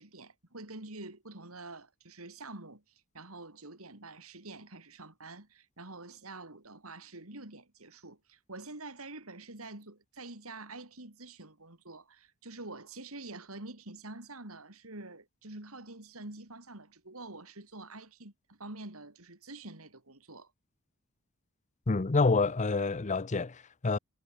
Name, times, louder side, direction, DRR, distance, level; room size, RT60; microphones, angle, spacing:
voice 1, 0.0-2.8 3.1-20.5, right 2 dB, 75° right, 4.2 m, -47 dB
voice 2, 21.9-24.0, left 3 dB, 35° left, 0.7 m, -27 dB
head